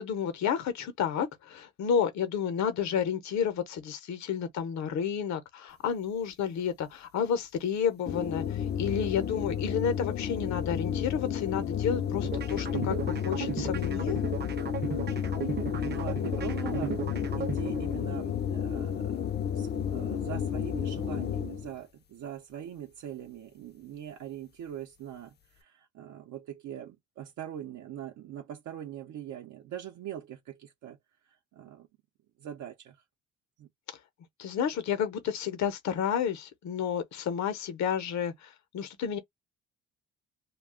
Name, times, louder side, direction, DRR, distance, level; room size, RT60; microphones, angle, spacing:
voice 1, 0.0-14.2 34.4-39.2, left 7 dB, 65° left, 0.8 m, -31 dB
sound 1, 8.1-21.7, left 8 dB, 35° left, 0.4 m, -32 dB
sound 2, 12.2-18.2, right 6 dB, 35° right, 0.7 m, -36 dB
voice 2, 15.7-17.0 17.4-19.3 19.5-31.0 31.2-31.9 32.4-33.0 33.6-33.7, right 10 dB, 75° right, 0.7 m, -42 dB
2.4 x 2.2 x 3.5 m
cardioid pair, 90°, 30 cm